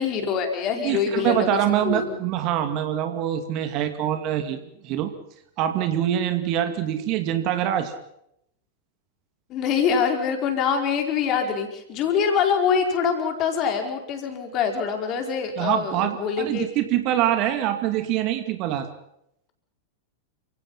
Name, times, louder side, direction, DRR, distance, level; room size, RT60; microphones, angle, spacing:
voice 1, 0.0-2.2 9.5-16.7, left 6 dB, 35° left, 4 dB, 4.9 m, -24 dB
voice 2, 0.8-5.1 5.6-7.9 15.6-18.9, right 11 dB, 40° right, 8 dB, 2.3 m, -24 dB
29.5 x 17.0 x 5.8 m, 0.75 s
figure-of-eight pair, 90°, 0 cm